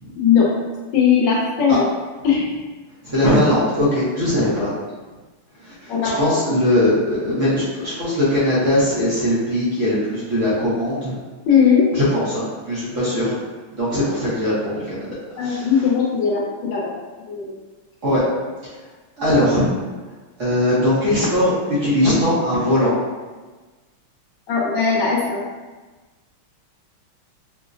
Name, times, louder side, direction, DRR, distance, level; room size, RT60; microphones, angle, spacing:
voice 1, 0.1-0.5 0.9-1.9 2.2-2.4 5.9-6.4 7.3-7.4 11.5-11.9 15.4-16.9 17.3-17.5 24.5-25.4, left 6 dB, 70° left, -4 dB, 1.1 m, -18 dB
voice 2, 3.0-4.7 5.6-11.2 11.9-13.4 13.7-15.9 18.0-18.3 19.2-19.7 20.4-22.9, left 1 dB, 60° right, -9 dB, 0.8 m, -20 dB
5.0 x 2.0 x 2.5 m, 1.3 s
omnidirectional pair, 2.4 m